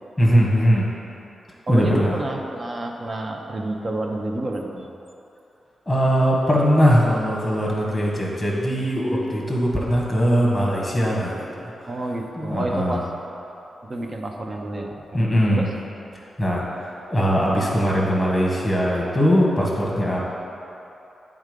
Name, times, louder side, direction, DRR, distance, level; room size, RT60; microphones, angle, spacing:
voice 1, 0.2-0.9 1.7-2.2 5.9-11.9 12.4-13.0 15.1-15.7 16.4-20.2, equal, 5° left, -4 dB, 1.3 m, -20 dB
voice 2, 1.7-4.9 11.9-13.1 13.8-15.2 15.5-15.7, right 2 dB, 35° right, 2 dB, 0.6 m, -29 dB
8.0 x 3.7 x 5.1 m, 2.9 s
wide cardioid pair, 115°, 0 cm